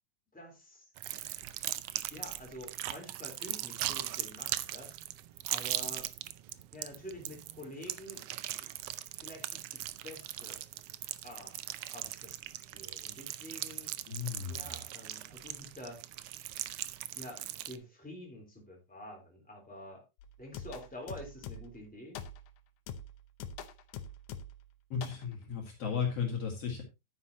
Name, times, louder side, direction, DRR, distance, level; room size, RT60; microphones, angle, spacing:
voice 1, 0.3-0.9 2.1-4.9 5.5-6.1 6.7-8.2 9.2-10.6 11.2-14.0 14.5-16.0 17.1-20.0 20.4-22.2, equal, 5° left, 0 dB, 3.5 m, -48 dB
sound 1, 1.0-17.8, right 14 dB, 75° right, 1.4 m, -40 dB
voice 2, 14.1-14.7 24.9-26.8, left 6 dB, 60° left, 1 dB, 3.1 m, -35 dB
sound 2, 20.2-21.8 22.1-22.5 22.9-24.7 25.0-25.2, left 5 dB, 90° left, 2.3 m, -44 dB
11.0 x 9.5 x 2.9 m, 0.24 s
omnidirectional pair, 3.3 m